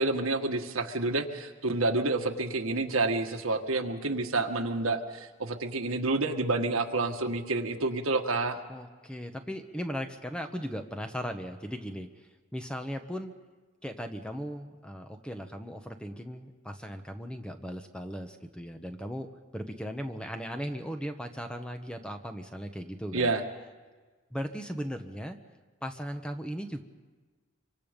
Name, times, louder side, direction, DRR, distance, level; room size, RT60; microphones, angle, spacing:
voice 1, 0.0-8.6 23.1-23.4, right 2 dB, 85° right, 5 dB, 1.6 m, -29 dB
voice 2, 8.7-12.1 12.5-13.3 13.8-23.3 24.3-25.4 25.8-26.8, equal, 5° left, 6 dB, 1.0 m, -37 dB
25.5 x 24.5 x 5.3 m, 1.3 s
head